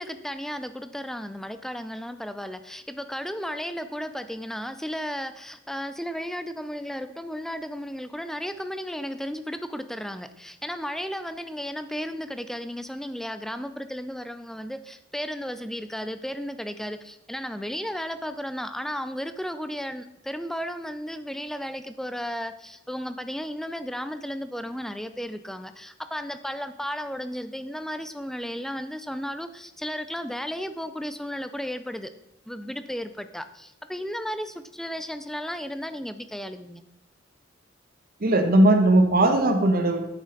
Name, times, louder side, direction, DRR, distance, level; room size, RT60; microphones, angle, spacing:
voice 1, 0.0-32.1 32.5-36.8, equal, ahead, 11 dB, 0.4 m, -34 dB
voice 2, 38.2-40.0, right 1 dB, 50° right, 5 dB, 1.0 m, -18 dB
8.6 x 6.4 x 3.9 m, 0.86 s
head